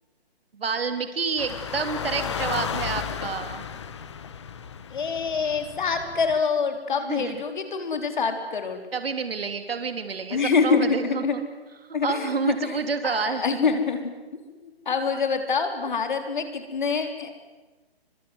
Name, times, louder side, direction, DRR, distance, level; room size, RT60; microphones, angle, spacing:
voice 1, 0.5-3.6 7.1-7.4 8.9-11.2 12.0-13.4, right 5 dB, 65° right, 8 dB, 3.1 m, -28 dB
sound 1, 1.4-6.4, left 7 dB, 25° left, 1.2 m, -34 dB
voice 2, 4.9-8.8 10.3-11.4 11.9-12.8 13.0-14.0 14.6-17.3, left 5 dB, 50° left, 6 dB, 4.2 m, -25 dB
25.5 x 25.0 x 8.0 m, 1.2 s
hypercardioid pair, 170°, 32 cm